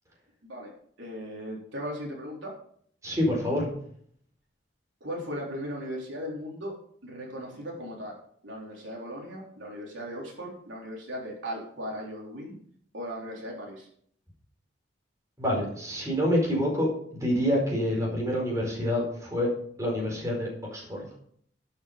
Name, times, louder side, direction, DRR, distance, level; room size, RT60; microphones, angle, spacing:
voice 1, 1.0-2.5 5.0-6.7 7.0-8.2 8.4-12.6 12.9-13.9, equal, 80° right, -2 dB, 3.8 m, -37 dB
voice 2, 3.0-3.7 15.4-16.9 17.1-19.5 19.8-21.1, equal, 15° right, -3 dB, 4.5 m, -27 dB
12.5 x 7.3 x 5.1 m, 0.62 s
head